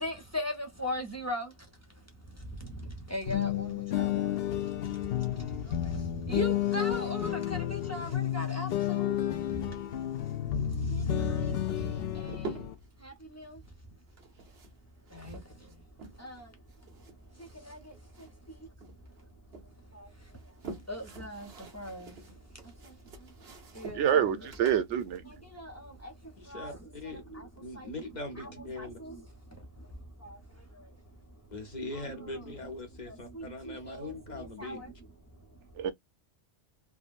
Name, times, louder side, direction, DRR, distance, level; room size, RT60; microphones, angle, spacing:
voice 1, 0.0-1.5 3.1-4.3 6.3-9.2 11.3-11.5 11.8-11.9 13.1-13.5 15.1-15.4 16.2-16.3 17.7-17.8 20.9-21.5 21.7-22.1 23.8-24.4 25.6-25.7 26.5-26.7 27.3-27.4 27.8-27.9 28.4-29.1 31.9-32.1 33.1-34.1 34.6-34.8, equal, 15° left, 0.7 m, -38 dB
sound 1, 3.3-12.7, left 11 dB, 65° left, 0.7 m, -31 dB
sound 2, 11.6-12.9 14.1-16.4 16.7-18.5 18.8-19.7 20.2-26.3, right 3 dB, 65° right, 1.2 m, -47 dB
voice 2, 23.9-25.2 35.8-35.9, right 9 dB, 90° right, 1.0 m, -26 dB
voice 3, 26.4-29.0 31.5-34.8, left 2 dB, 45° left, 0.9 m, -41 dB
3.4 x 2.2 x 2.4 m
omnidirectional pair, 1.2 m